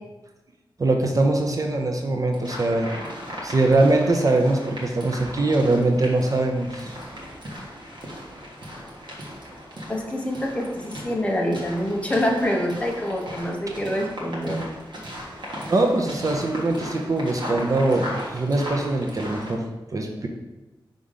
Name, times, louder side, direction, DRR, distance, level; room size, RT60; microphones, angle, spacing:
voice 1, 0.8-2.9 3.4-6.9 15.7-19.6 19.9-20.3, right 2 dB, 40° right, 2 dB, 0.6 m, -22 dB
sound 1, 2.3-19.5, equal, 55° right, 1.5 m, -37 dB
voice 2, 9.9-14.6, equal, 15° left, 0 dB, 0.8 m, -26 dB
5.0 x 3.6 x 5.5 m, 1.1 s
wide cardioid pair, 150°, 9 cm